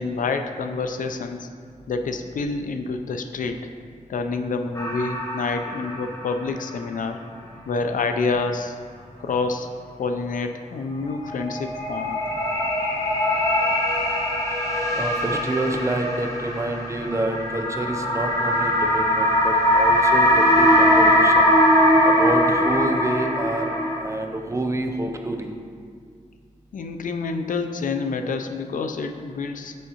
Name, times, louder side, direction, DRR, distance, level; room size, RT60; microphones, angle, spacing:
voice 1, 0.0-1.5 1.9-3.6 4.1-7.2 7.7-8.8 9.2-9.7 10.0-12.2 26.7-29.8, left 4 dB, 80° left, 6 dB, 0.4 m, -27 dB
sound 1, 4.7-6.3 6.7-6.8 11.1-24.0, equal, 25° left, 0.9 m, -21 dB
voice 2, 15.0-21.5 22.0-25.5, right 1 dB, 20° right, 4 dB, 0.4 m, -28 dB
6.2 x 5.4 x 2.8 m, 2.1 s
wide cardioid pair, 125°, 14 cm